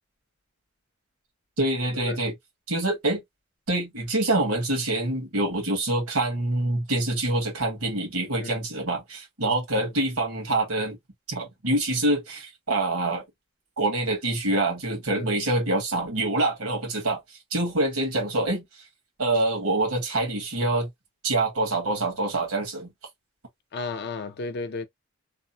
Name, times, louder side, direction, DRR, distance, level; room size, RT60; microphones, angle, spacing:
voice 1, 1.6-2.3 2.7-3.2 3.7-11.0 11.3-13.2 13.8-18.6 19.2-20.9 21.2-22.9, right 2 dB, 90° right, 1.7 m, -26 dB
voice 2, 23.7-24.9, left 3 dB, 50° left, 0.5 m, -33 dB
3.3 x 2.0 x 2.8 m
head